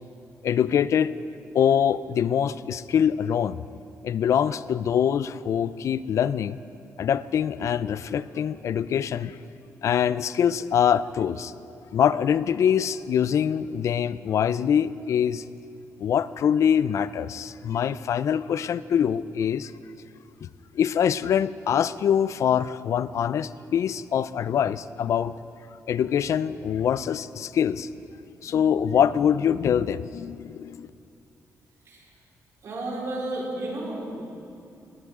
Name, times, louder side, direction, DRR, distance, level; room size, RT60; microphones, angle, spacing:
voice 1, 0.4-1.1 1.5-3.6 4.0-6.6 7.0-9.4 9.8-11.5 11.9-15.4 16.0-19.7 20.4-20.5 20.7-25.3 25.9-27.9 28.4-30.9, left 8 dB, 60° left, 16 dB, 0.4 m, -24 dB
voice 2, 32.6-34.2, right 2 dB, 55° right, -4 dB, 4.4 m, -32 dB
20.5 x 17.5 x 3.7 m, 2.7 s
wide cardioid pair, 155°, 6 cm